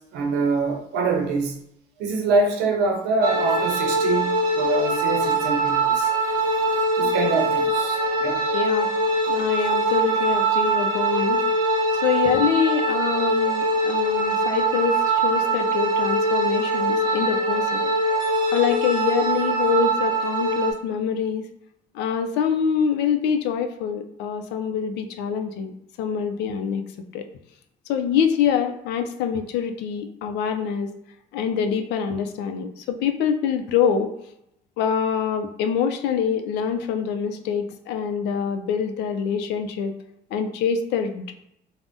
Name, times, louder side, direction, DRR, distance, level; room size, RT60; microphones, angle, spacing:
voice 1, 0.0-1.6 2.0-6.1 7.0-8.4, right 3 dB, 85° right, 2 dB, 0.7 m, -25 dB
sound 1, 3.2-20.7, right 2 dB, 25° right, 0.8 m, -22 dB
voice 2, 8.5-8.9 9.3-11.4 11.9-17.9 18.5-21.5 21.9-25.7 26.0-26.8 27.1-27.3 27.9-30.9 31.3-34.1 34.8-39.9 40.3-41.3, left 7 dB, 85° left, 6 dB, 0.4 m, -25 dB
2.5 x 2.1 x 3.4 m, 0.79 s
cardioid pair, 110°, 17 cm